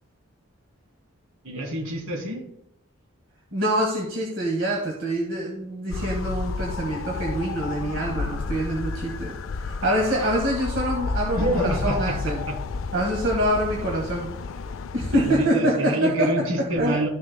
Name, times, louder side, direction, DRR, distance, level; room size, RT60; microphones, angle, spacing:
voice 1, 1.4-2.4 9.8-10.3 11.3-12.2 12.5-12.6 15.1-17.1, right 1 dB, 80° right, 1 dB, 2.6 m, -27 dB
voice 2, 3.5-12.5 12.9-14.4 14.9-16.3 16.6-17.0, right 1 dB, 65° right, -2 dB, 1.7 m, -25 dB
sound 1, 5.9-15.5, left 4 dB, 70° left, 0.4 m, -31 dB
13.5 x 6.4 x 2.2 m, 0.78 s
head